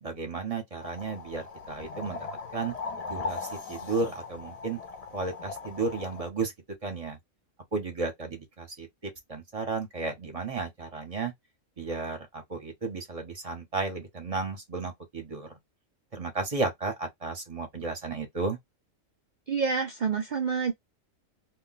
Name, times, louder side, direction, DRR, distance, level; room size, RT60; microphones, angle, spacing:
voice 1, 0.0-2.3 2.5-2.7 3.1-4.8 5.1-6.5 6.8-7.2 7.7-11.3 11.8-15.5 16.1-18.6, right 4 dB, 35° right, 0.6 m, -33 dB
sound 1, 0.8-6.3, left 4 dB, 60° left, 0.4 m, -39 dB
voice 2, 19.5-20.7, right 5 dB, 85° right, 0.4 m, -27 dB
2.2 x 2.2 x 3.8 m
omnidirectional pair, 1.4 m